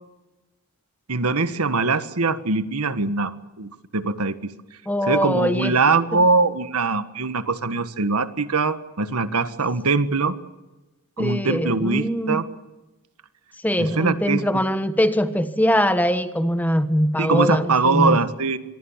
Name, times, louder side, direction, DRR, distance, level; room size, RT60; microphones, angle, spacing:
voice 1, 1.1-4.5 5.0-10.3 11.2-12.4 13.8-14.6 17.2-18.6, right 4 dB, 85° right, 11 dB, 1.5 m, -22 dB
voice 2, 4.9-5.7 11.2-12.4 13.6-18.2, equal, 5° left, 10 dB, 1.4 m, -22 dB
26.0 x 22.0 x 7.3 m, 1.1 s
head